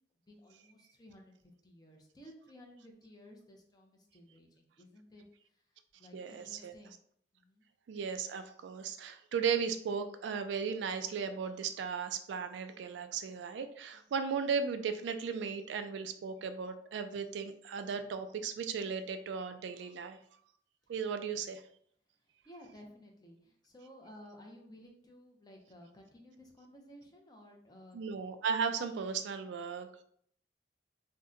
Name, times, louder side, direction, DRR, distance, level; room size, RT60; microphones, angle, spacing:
voice 1, 0.3-5.2 6.0-6.9 7.3-7.6 13.9-14.1 22.4-28.0, equal, 20° left, 1 dB, 0.6 m, -55 dB
voice 2, 6.1-6.8 7.9-20.2 20.9-21.6 27.9-30.0, right 6 dB, 80° right, 8 dB, 0.3 m, -36 dB
2.7 x 2.1 x 3.6 m, 0.64 s
head